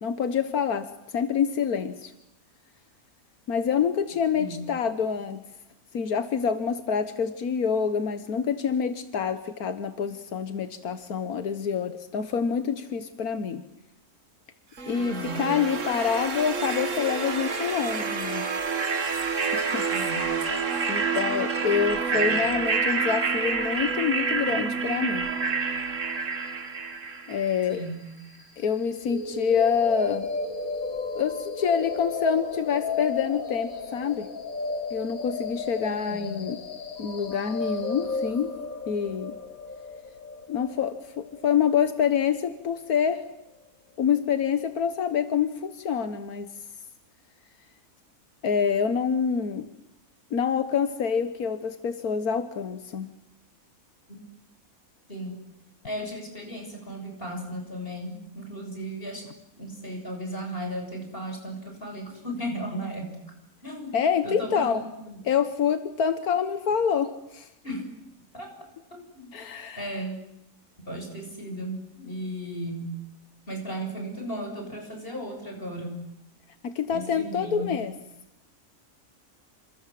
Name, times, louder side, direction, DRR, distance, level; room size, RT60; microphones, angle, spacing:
voice 1, 0.0-2.1 3.5-5.4 5.9-13.6 14.9-18.5 19.5-19.8 20.9-25.3 27.3-27.8 28.6-30.3 31.1-34.3 34.9-36.6 37.0-38.5 38.9-39.3 40.5-43.2 44.0-46.5 48.4-49.7 50.3-53.1 63.9-64.8 65.2-67.5 69.3-70.0 76.6-77.9, left 7 dB, 85° left, 10 dB, 1.8 m, -26 dB
sound 1, 14.8-27.7, right 5 dB, 60° right, 2.1 m, -28 dB
voice 2, 15.0-15.5 19.9-20.3 22.1-22.4 27.7-28.1 35.8-36.4 54.1-54.2 55.1-55.4 55.8-59.3 59.6-63.1 63.6-65.2 67.6-67.9 68.3-68.5 68.9-69.3 69.8-70.2 70.8-73.0 73.5-76.0 76.9-77.8, right 1 dB, 40° left, 3 dB, 7.3 m, -36 dB
sound 2, 29.0-43.0, left 4 dB, 70° left, 2.6 m, -34 dB
29.0 x 26.5 x 7.7 m, 0.86 s
omnidirectional pair, 1.5 m